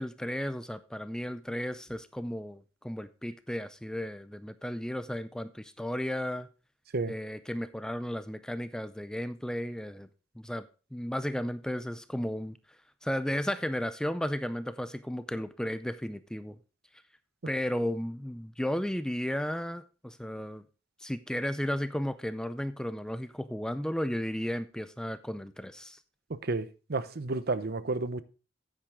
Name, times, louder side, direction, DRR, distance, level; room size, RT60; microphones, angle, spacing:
voice 1, 0.0-6.5 7.1-10.1 10.4-10.7 10.9-12.6 13.0-16.6 17.5-20.6 21.0-26.0, equal, 5° left, 0.4 m, -34 dB
voice 2, 26.3-28.2, right 3 dB, 55° right, 0.7 m, -31 dB
9.8 x 9.0 x 3.6 m
head